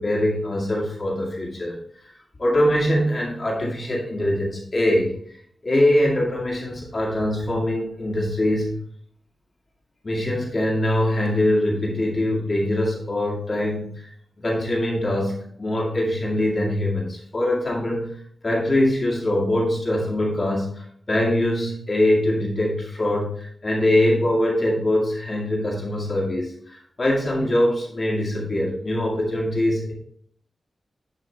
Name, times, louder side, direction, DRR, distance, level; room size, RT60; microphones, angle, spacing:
voice 1, 0.0-1.7 2.4-5.1 5.6-8.8 10.0-13.9 14.4-18.1 18.4-20.7 21.1-29.9, left 1 dB, 35° left, -3 dB, 2.1 m, -23 dB
11.0 x 5.5 x 3.2 m, 0.64 s
wide cardioid pair, 150°, 0 cm